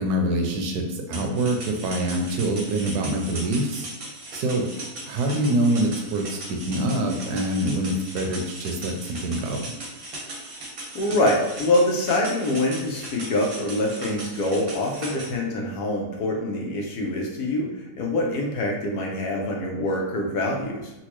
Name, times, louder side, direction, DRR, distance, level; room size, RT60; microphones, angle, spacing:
voice 1, 0.0-3.9 4.3-4.7 5.1-9.7, right 1 dB, 75° right, 2 dB, 1.1 m, -25 dB
sound 1, 1.1-15.3, right 1 dB, 45° right, 0.8 m, -38 dB
voice 2, 10.9-20.9, left 1 dB, 75° left, -1 dB, 1.3 m, -25 dB
4.1 x 2.2 x 3.0 m, 1.0 s
omnidirectional pair, 1.7 m